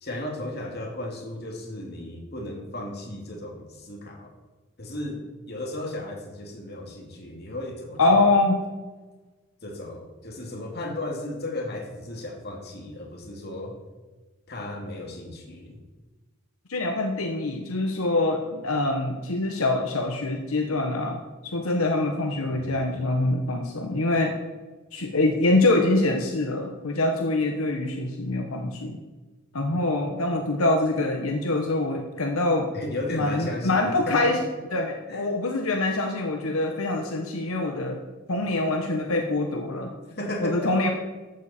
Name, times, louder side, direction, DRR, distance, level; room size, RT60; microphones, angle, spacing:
voice 1, 0.0-4.3 4.8-8.0 9.6-13.8 14.5-15.8 22.4-22.7 29.7-29.8 32.7-34.4 35.1-35.3 40.1-40.7, left 1 dB, 45° left, 1 dB, 2.5 m, -35 dB
voice 2, 8.0-8.6 16.7-24.4 24.9-29.0 29.5-32.7 33.1-34.4 34.7-38.0 38.3-39.9 40.4-40.9, left 2 dB, 80° left, 3 dB, 1.2 m, -24 dB
14.0 x 12.0 x 4.4 m, 1.2 s
head